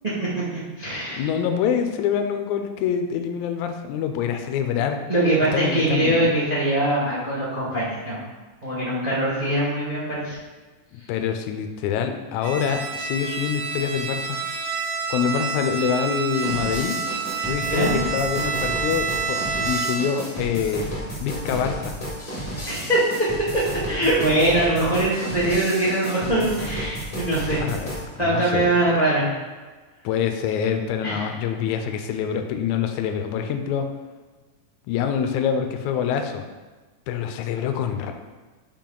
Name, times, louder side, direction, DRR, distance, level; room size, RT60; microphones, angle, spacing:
voice 1, 0.0-1.3 5.1-8.2 8.6-10.4 17.7-18.0 22.7-23.3 23.5-27.6 28.2-29.3 31.0-31.3, right 1 dB, 35° right, -7 dB, 0.6 m, -22 dB
voice 2, 1.1-5.0 5.5-6.4 10.9-14.4 15.1-17.0 17.4-20.8 21.2-21.9 27.6-27.9 28.2-28.9 30.0-33.9 34.9-36.4 37.1-38.1, left 8 dB, 80° left, 6 dB, 1.9 m, -25 dB
Bowed string instrument, 12.4-20.3, right 5 dB, 80° right, 2.9 m, -28 dB
sound 1, 16.3-28.0, equal, 40° left, 0.5 m, -32 dB
7.5 x 4.5 x 3.8 m, 1.3 s
omnidirectional pair, 3.7 m